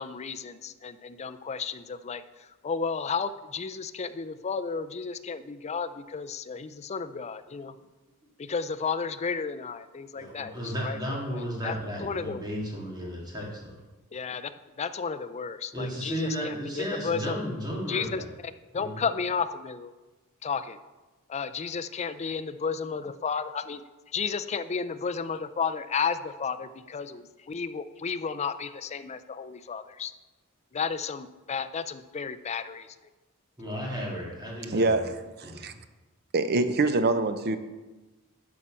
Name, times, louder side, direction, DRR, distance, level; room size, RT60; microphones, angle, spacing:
voice 1, 0.0-7.8 8.4-11.0 11.3-12.4 14.1-14.5 14.8-17.4 17.9-19.9 20.4-20.8 21.3-30.1 30.7-33.0, left 5 dB, 30° left, 12 dB, 0.4 m, -33 dB
voice 2, 10.2-13.7 15.7-18.3 18.8-19.0 33.6-35.0 35.4-35.7, equal, 20° right, -3 dB, 2.3 m, -34 dB
voice 3, 34.7-35.1 35.4-35.7 36.3-37.6, right 2 dB, 50° right, 10 dB, 0.6 m, -24 dB
11.0 x 4.4 x 6.1 m, 1.2 s
head